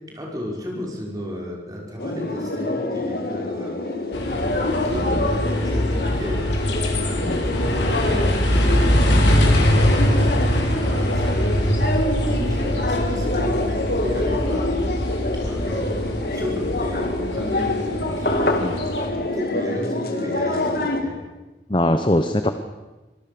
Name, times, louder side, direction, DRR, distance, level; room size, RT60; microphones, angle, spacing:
voice 1, 0.1-6.5 6.9-15.0 15.3-21.2, left 1 dB, 20° right, -2 dB, 5.4 m, -33 dB
sound 1, 2.0-21.0, left 2 dB, 55° left, 2.1 m, -26 dB
sound 2, 4.1-19.1, equal, 85° left, 4.3 m, -23 dB
voice 2, 21.7-22.5, left 1 dB, 25° left, 8 dB, 0.9 m, -21 dB
25.0 x 18.5 x 6.9 m, 1.2 s
head